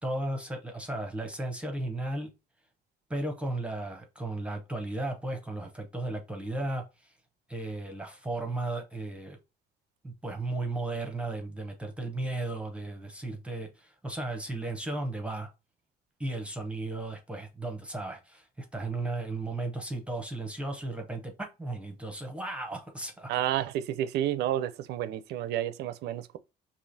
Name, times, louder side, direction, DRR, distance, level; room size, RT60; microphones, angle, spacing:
voice 1, 0.0-2.3 3.1-7.1 7.5-9.4 10.0-15.5 16.2-23.6, right 2 dB, 5° right, 0.7 m, -35 dB
voice 2, 23.3-26.4, right 12 dB, 75° right, 0.4 m, -30 dB
4.8 x 2.8 x 2.7 m
cardioid pair, 110°, 17 cm